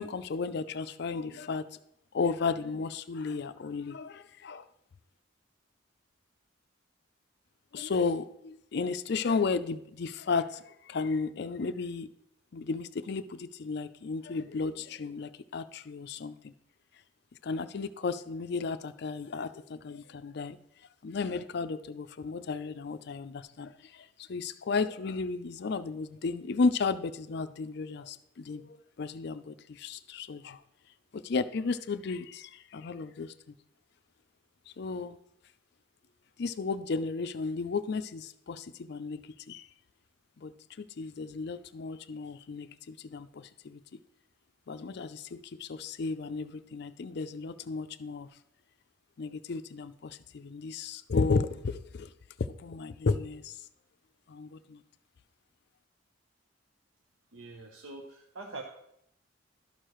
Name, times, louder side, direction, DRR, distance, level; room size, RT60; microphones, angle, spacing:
voice 1, 0.0-1.8 2.1-4.7 7.7-12.1 12.5-16.5 16.9-17.0 17.4-33.6 34.7-35.2 36.4-39.7 40.4-44.0 44.7-48.4 49.2-52.1 52.4-53.7 54.3-54.8, left 4 dB, 55° left, 12 dB, 0.4 m, -34 dB
voice 2, 57.3-58.6, right 3 dB, 90° right, 3 dB, 0.7 m, -44 dB
12.0 x 6.5 x 3.0 m, 0.76 s
head